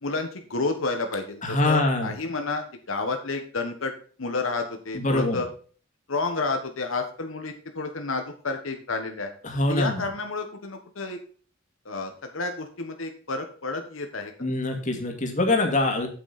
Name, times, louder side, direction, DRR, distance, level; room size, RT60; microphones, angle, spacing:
voice 1, 0.0-3.9 4.2-5.5 6.1-9.3 9.7-11.2 11.8-14.3, left 3 dB, 85° left, 5 dB, 1.3 m, -30 dB
voice 2, 1.4-2.1 4.9-5.4 9.4-10.1 14.4-16.1, left 2 dB, 40° left, 3 dB, 2.3 m, -24 dB
8.3 x 8.3 x 4.2 m, 0.43 s
head